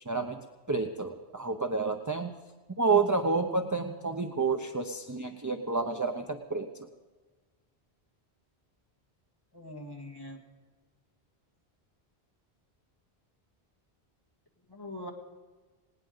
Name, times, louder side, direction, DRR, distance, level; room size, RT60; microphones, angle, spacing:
voice 1, 0.1-0.4 0.7-2.3 2.8-6.7, right 4 dB, 20° right, 6 dB, 0.7 m, -29 dB
voice 2, 9.5-10.4 14.7-15.1, left 1 dB, 20° left, 1 dB, 2.2 m, -42 dB
19.5 x 18.5 x 3.9 m, 1.3 s
omnidirectional pair, 1.1 m